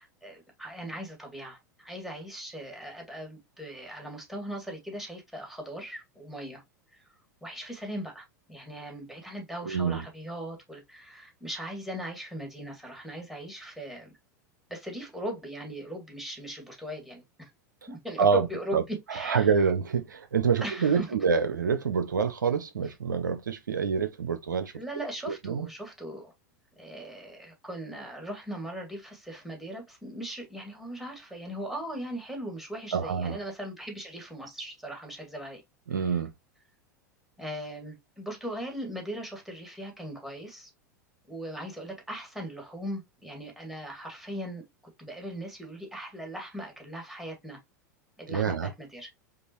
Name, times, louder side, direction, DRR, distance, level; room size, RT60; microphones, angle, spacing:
voice 1, 0.0-6.6 6.9-7.0 7.4-14.1 14.7-17.5 17.9-19.5 20.6-21.1 24.7-26.3 26.8-35.6 35.9-36.2 37.4-40.7 41.3-44.6 45.0-47.6 48.2-49.1, equal, 5° right, 2.0 m, -39 dB
voice 2, 9.7-10.0 18.2-18.5 18.7-18.8 19.1-24.7 25.4-25.7 32.9-33.4 35.9-36.3 48.3-48.7, right 6 dB, 85° right, 0.5 m, -26 dB
5.2 x 2.4 x 2.9 m
hypercardioid pair, 90°, 10 cm